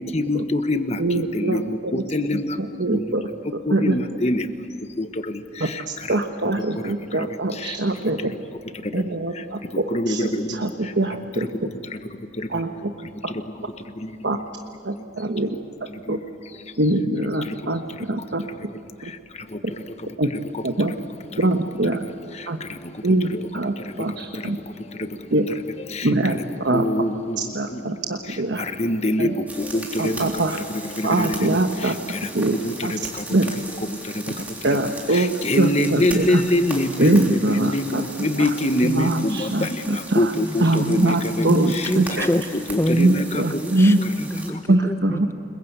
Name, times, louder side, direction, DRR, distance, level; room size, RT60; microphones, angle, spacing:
voice 1, 0.1-1.0 1.3-2.6 2.9-3.0 3.7-4.5 5.0-5.1 9.9-10.5 12.4-12.5 16.1-16.2 25.9-26.1 26.7-27.4 28.8-29.3 29.7-30.3 31.0-31.6 32.6-33.0 35.1-39.7 40.2-41.9 42.2-42.3 42.7-43.4, left 1 dB, 35° left, 9 dB, 1.2 m, -24 dB
voice 2, 1.0-2.0 2.6-3.2 3.7-4.0 5.6-5.7 6.1-8.2 8.9-11.5 12.5-12.9 13.2-13.3 14.2-14.4 14.8-15.6 16.1-16.2 16.8-18.5 19.0-19.1 20.2-20.3 20.6-20.9 21.4-22.0 22.5-22.6 23.0-24.6 25.3-25.5 26.0-26.8 27.5-28.6 29.2-29.3 30.0-30.6 31.0-32.0 32.3-32.5 32.8-32.9 33.3-33.5 34.6-36.4 37.0-38.0 38.4-38.5 38.8-40.3 40.6-42.3 43.0-44.0 44.7-45.3, right 2 dB, 60° right, 5 dB, 1.2 m, -23 dB
sound 1, 29.5-44.5, right 2 dB, 10° right, 3.4 m, -38 dB
voice 3, 40.3-40.7 41.4-42.4 42.8-45.3, left 1 dB, 15° left, 10 dB, 0.9 m, -26 dB
29.5 x 21.5 x 8.1 m, 2.4 s
head